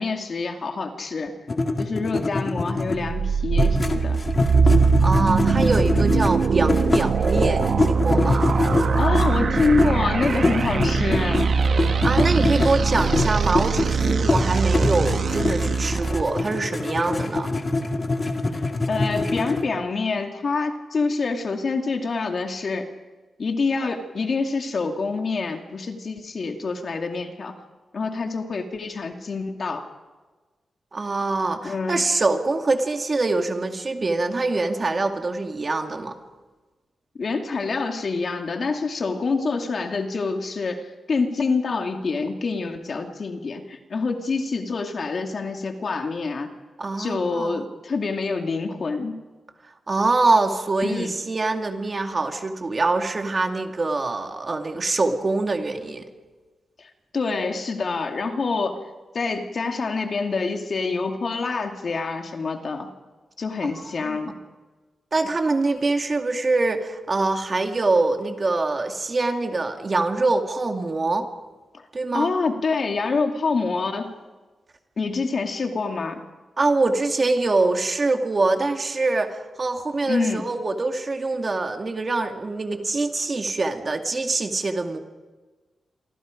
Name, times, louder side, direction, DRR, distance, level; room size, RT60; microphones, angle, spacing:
voice 1, 0.0-1.3 1.8-4.2 8.9-11.4 18.5-22.9 23.4-27.6 27.9-29.9 31.6-32.0 37.2-46.5 47.0-49.2 50.8-51.1 56.8-58.8 59.1-62.9 63.4-64.4 72.1-74.1 75.0-76.2 80.0-80.5, left 4 dB, 50° left, 4 dB, 2.3 m, -26 dB
sound 1, 1.5-3.1 3.5-9.9 10.2-19.6, left 2 dB, 30° left, 2.1 m, -24 dB
sound 2, 3.0-16.2, right 5 dB, 55° right, 1.0 m, -22 dB
voice 2, 5.0-8.5 12.0-17.6 30.9-36.1 46.8-47.6 49.9-56.1 64.0-64.2 65.1-71.3 71.9-72.3 76.6-85.0, right 3 dB, 35° right, 4 dB, 2.2 m, -24 dB
27.5 x 24.0 x 5.2 m, 1.3 s
wide cardioid pair, 125°, 0 cm